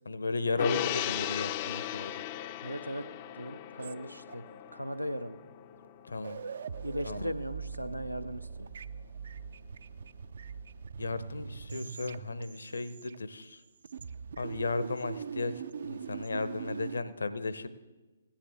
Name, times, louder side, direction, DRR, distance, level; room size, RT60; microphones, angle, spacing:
voice 1, 0.1-2.1 6.1-6.4 7.0-7.3 11.0-13.6 14.4-17.7, left 3 dB, 65° left, 13 dB, 0.7 m, -35 dB
Gong, 0.6-7.2 7.5-7.7, left 13 dB, 30° left, 0.4 m, -37 dB
voice 2, 2.6-3.0 3.4-4.4 4.7-5.4 6.8-8.5, equal, 90° right, 10 dB, 0.6 m, -37 dB
sound 1, 3.8-4.7 5.8-5.9 6.1-13.5 13.8-17.0, right 6 dB, 55° right, 0.3 m, -42 dB
16.5 x 10.0 x 3.5 m, 1.2 s
figure-of-eight pair, 130°, 0 cm